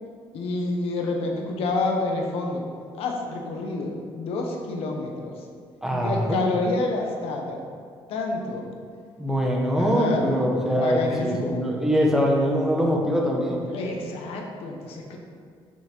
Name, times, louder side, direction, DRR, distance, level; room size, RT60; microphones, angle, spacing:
voice 1, 0.3-2.7 3.0-5.4 5.9-7.6 8.1-8.7 9.8-10.3 10.6-11.6 13.7-15.2, left 3 dB, 80° left, 1 dB, 1.2 m, -28 dB
voice 2, 5.8-6.4 9.2-13.6, equal, 5° right, -1 dB, 1.0 m, -23 dB
7.2 x 6.2 x 4.5 m, 2.2 s
cardioid pair, 160°, 10 cm